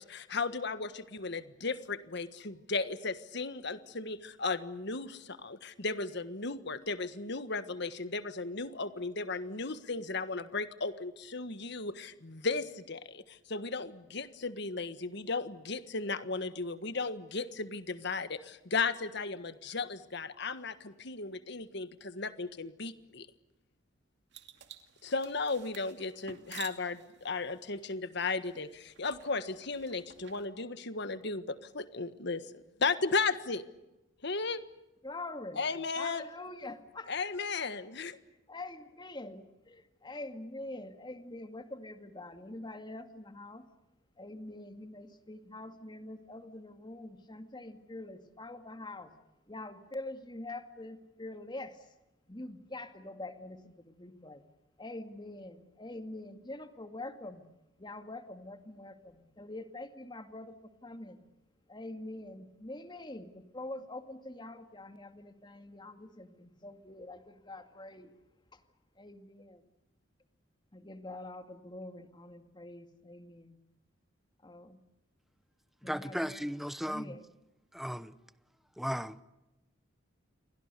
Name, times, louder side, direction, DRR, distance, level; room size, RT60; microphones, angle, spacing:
voice 1, 0.0-23.3 25.0-33.6 34.2-34.6 35.5-36.2 37.1-38.2, left 4 dB, 60° left, 1.5 m, -35 dB
sound 1, 24.3-30.5, right 9 dB, 60° right, 2.4 m, -52 dB
voice 2, 35.0-35.6 35.9-37.1 38.5-43.7 44.2-49.1 49.5-51.9 52.3-54.4 54.8-57.4 57.8-61.2 61.7-68.1 68.5-68.6 69.0-69.6 70.7-73.6 74.4-74.8 75.8-76.4 76.9-77.2, left 2 dB, 25° left, 2.2 m, -45 dB
voice 3, 75.8-77.2 77.7-78.1 78.8-79.2, equal, ahead, 0.9 m, -36 dB
29.5 x 24.0 x 6.8 m
head